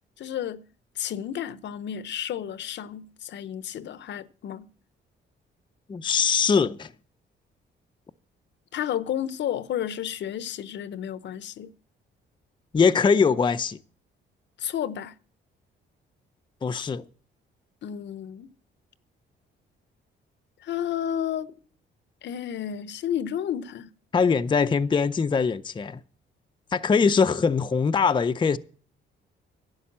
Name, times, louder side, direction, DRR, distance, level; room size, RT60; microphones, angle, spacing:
voice 1, 0.2-0.6 1.0-4.7 8.7-11.7 14.6-15.1 17.8-18.5 20.6-21.5 22.2-23.9, left 10 dB, 65° left, 0.7 m, -31 dB
voice 2, 5.9-6.9 12.7-13.8 16.6-17.0 24.1-26.0 26.7-28.6, left 5 dB, 25° left, 0.5 m, -22 dB
11.5 x 7.9 x 7.3 m
cardioid pair, 90°, 20 cm